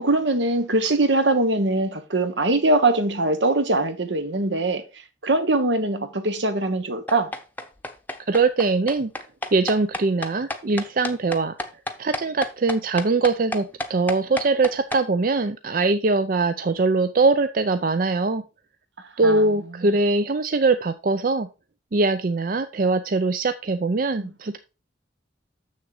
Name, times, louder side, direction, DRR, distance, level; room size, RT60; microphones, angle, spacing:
voice 1, 0.0-7.3 19.0-19.9 24.2-24.3, right 2 dB, 75° right, 1.2 m, -22 dB
sound 1, 7.1-15.0, left 1 dB, 10° left, 0.8 m, -30 dB
voice 2, 8.3-9.1 9.5-11.5 12.0-18.4 19.2-21.5 21.9-24.6, right 3 dB, 45° right, 0.5 m, -22 dB
7.1 x 6.5 x 4.8 m
head